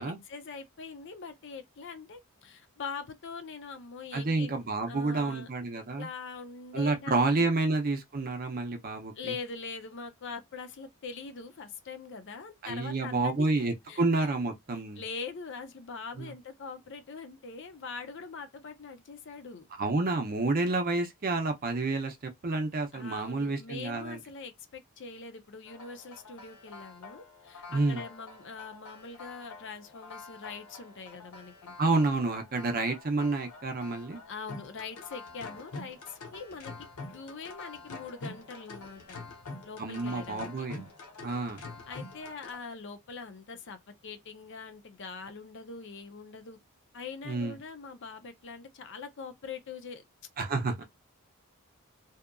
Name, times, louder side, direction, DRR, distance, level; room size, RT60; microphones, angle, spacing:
voice 1, 0.0-4.6 4.9-5.5 6.0-7.5 9.1-13.5 13.9-14.3 14.7-19.7 22.9-31.8 34.3-39.2 39.6-40.7 41.9-46.6 46.9-50.0, left 5 dB, 55° left, 0.5 m, -43 dB
voice 2, 4.1-6.1 6.7-9.3 12.6-15.0 16.2-16.3 19.8-24.2 27.7-28.0 31.8-34.2 39.8-40.9 41.2-41.6 47.3-47.6 50.4-50.8, right 3 dB, 40° right, 0.5 m, -29 dB
sound 1, 25.6-42.6, left 3 dB, 85° left, 0.8 m, -46 dB
2.8 x 2.4 x 2.2 m
head